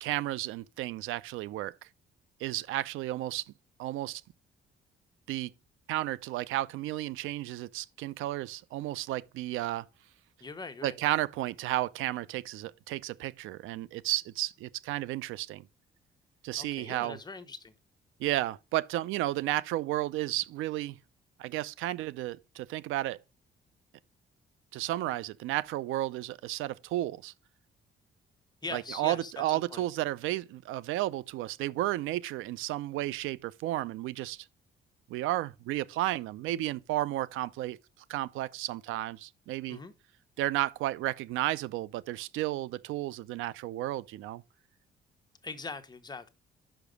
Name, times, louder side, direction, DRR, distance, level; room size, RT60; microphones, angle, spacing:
voice 1, 0.0-1.7 2.4-3.4 3.8-4.2 5.3-5.5 5.9-9.8 10.8-15.6 16.4-17.2 18.2-21.0 21.4-23.2 24.7-27.3 28.7-34.5 35.1-37.8 38.1-39.8 40.4-44.4, right 15 dB, 90° right, 0.4 m, -33 dB
voice 2, 10.4-11.0 16.6-17.7 28.6-29.9 39.7-39.9 45.4-46.3, left 4 dB, 20° left, 1.0 m, -41 dB
5.9 x 5.1 x 5.2 m
cardioid pair, 90°, 20 cm